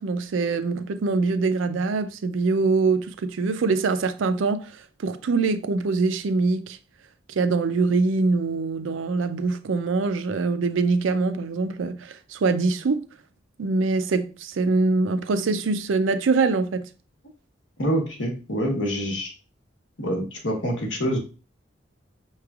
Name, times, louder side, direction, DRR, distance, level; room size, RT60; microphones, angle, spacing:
voice 1, 0.0-6.8 7.4-13.0 13.6-16.8, right 3 dB, 80° right, 0.4 m, -24 dB
voice 2, 17.8-19.3 20.0-21.2, equal, 70° left, 1.2 m, -26 dB
5.8 x 3.2 x 2.4 m
head